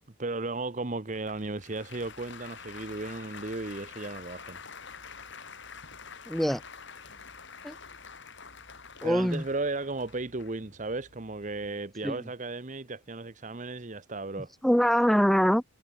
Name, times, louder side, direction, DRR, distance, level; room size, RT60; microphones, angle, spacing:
voice 1, 0.2-4.6 9.0-14.5, right 2 dB, 35° right, 1.0 m, -35 dB
Applause, 1.1-11.7, left 5 dB, 55° left, 5.2 m, -47 dB
voice 2, 6.3-6.6 7.6-7.8 9.0-9.4 12.0-12.2 14.6-15.6, equal, ahead, 0.5 m, -23 dB
head